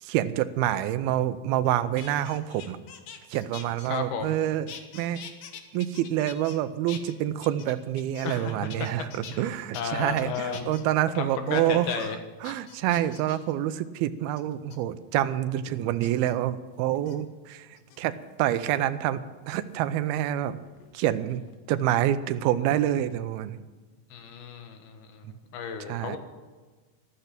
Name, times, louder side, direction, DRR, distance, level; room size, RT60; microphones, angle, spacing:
voice 1, 0.0-2.8 3.3-5.2 5.7-12.1 12.4-17.7 18.0-20.6 20.9-21.4 21.7-23.6 25.9-26.2, right 12 dB, 85° right, 14 dB, 2.6 m, -27 dB
sound 1, 1.6-4.4 4.7-6.6 6.9-8.4 8.7-9.4 9.7-9.8 10.2-10.8 11.3-11.6 12.0-12.1 12.4-13.5 14.4-14.8 16.0-16.3 16.9-17.2 17.7-18.3 19.7-20.9 21.2-21.6, left 7 dB, 60° left, 1.9 m, -46 dB
voice 2, 3.9-4.4 8.2-8.9 9.3-10.7 11.2-12.2 24.1-26.2, left 6 dB, 90° left, 6 dB, 3.5 m, -34 dB
14.0 x 13.5 x 6.0 m, 1.3 s
omnidirectional pair, 4.3 m